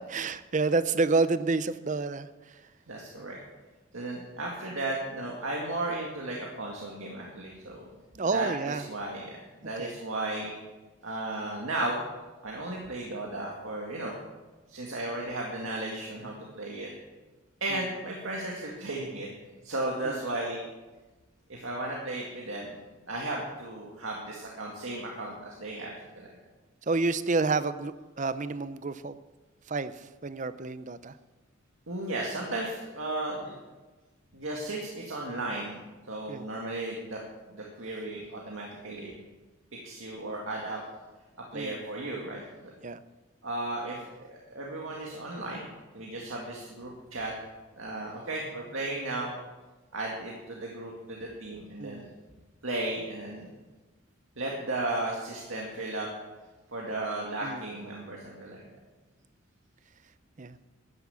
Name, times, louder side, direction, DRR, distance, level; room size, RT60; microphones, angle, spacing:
voice 1, 0.1-2.5 8.2-8.9 9.8-10.0 17.7-17.8 20.0-20.2 26.9-29.2 29.7-31.2 36.3-36.5 41.5-41.8 42.8-43.0 51.8-52.0 57.4-57.6 60.4-60.6, right 3 dB, 40° right, 14 dB, 0.6 m, -29 dB
voice 2, 2.9-3.4 3.9-7.9 8.2-9.4 9.6-10.5 11.0-12.0 12.4-14.1 14.7-16.9 17.6-19.3 19.6-20.6 21.5-22.7 23.1-26.3 31.9-33.5 34.3-35.8 36.1-37.2 37.5-39.1 39.8-40.8 41.5-42.7 43.4-44.0 44.3-47.3 47.8-49.3 49.9-52.1 52.6-53.5 54.4-56.1 56.7-58.7, right 2 dB, 80° right, -2 dB, 2.1 m, -35 dB
12.0 x 10.0 x 7.1 m, 1.2 s
head